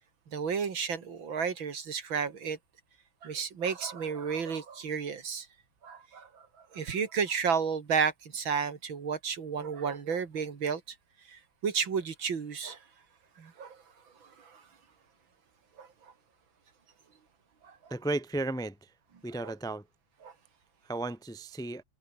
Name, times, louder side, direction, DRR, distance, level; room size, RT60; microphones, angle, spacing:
voice 1, 0.3-2.6 3.2-5.5 5.8-6.5 6.7-10.8 11.3-12.8 13.4-13.8 14.2-14.6 15.8-15.9 17.6-17.9 19.4-19.5 20.2-20.3, right 6 dB, 80° right, 3.1 m, -32 dB
voice 2, 17.9-18.9 19.2-19.8 20.8-21.8, right 2 dB, 5° left, 0.7 m, -34 dB
omnidirectional pair, 2.1 m